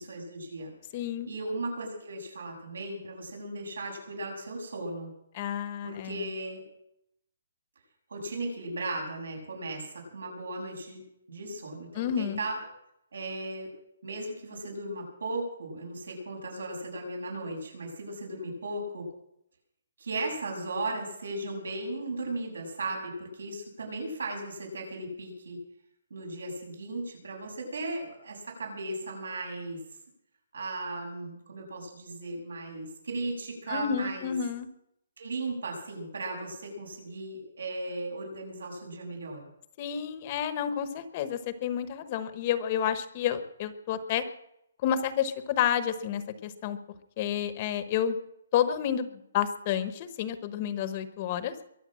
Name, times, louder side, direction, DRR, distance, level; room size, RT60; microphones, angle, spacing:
voice 1, 0.1-0.7 1.3-5.1 5.8-6.6 8.1-11.0 11.3-12.6 13.1-13.7 14.0-19.1 20.0-25.6 26.1-29.8 30.5-34.3 35.2-39.4, right 2 dB, 90° right, 1 dB, 7.5 m, -36 dB
voice 2, 0.9-1.3 5.3-6.2 11.9-12.4 33.7-34.7 39.8-44.2 44.8-46.8 47.2-48.2 48.5-51.5, left 9 dB, 25° left, 12 dB, 1.0 m, -30 dB
22.5 x 8.0 x 7.6 m, 0.78 s
hypercardioid pair, 175°, 0 cm